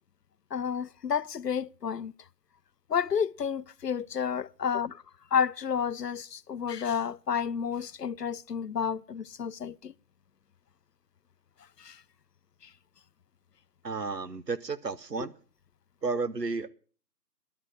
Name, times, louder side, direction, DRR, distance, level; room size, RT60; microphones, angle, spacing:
voice 1, 0.5-2.1 2.9-5.0 5.3-9.9 11.8-12.0, left 7 dB, 70° left, 0.6 m, -30 dB
voice 2, 13.8-15.3 16.0-16.7, right 4 dB, 75° right, 1.2 m, -32 dB
11.0 x 8.5 x 7.7 m
figure-of-eight pair, 175°, 49 cm